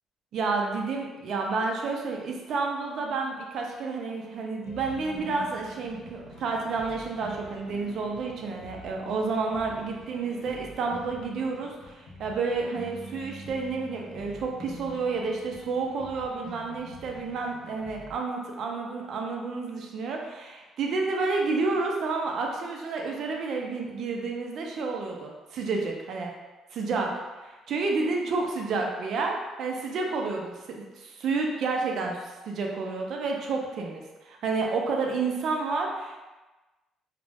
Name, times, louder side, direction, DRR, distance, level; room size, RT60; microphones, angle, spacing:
voice 1, 0.3-26.3 26.7-36.2, right 4 dB, 50° right, 1 dB, 0.4 m, -30 dB
sound 1, 4.6-18.2, equal, 55° left, 0.5 m, -46 dB
2.4 x 2.0 x 3.3 m, 1.2 s
cardioid pair, 165°, 0 cm